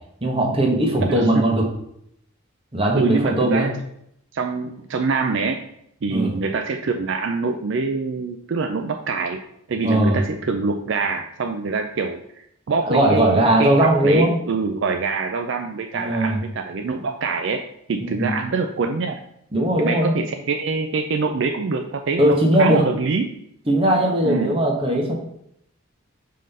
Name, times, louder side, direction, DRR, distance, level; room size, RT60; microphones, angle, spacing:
voice 1, 0.2-1.7 2.7-3.7 6.1-6.3 9.8-10.2 12.9-14.3 15.9-16.4 18.0-18.3 19.5-20.1 22.2-22.8 23.7-25.1, right 1 dB, 25° right, 0 dB, 1.1 m, -19 dB
voice 2, 1.1-1.5 3.0-3.7 4.3-5.6 6.0-9.4 9.7-17.6 17.9-19.2 19.8-23.3 24.2-24.5, right 4 dB, 60° right, 6 dB, 0.4 m, -25 dB
5.3 x 3.8 x 5.4 m, 0.74 s
head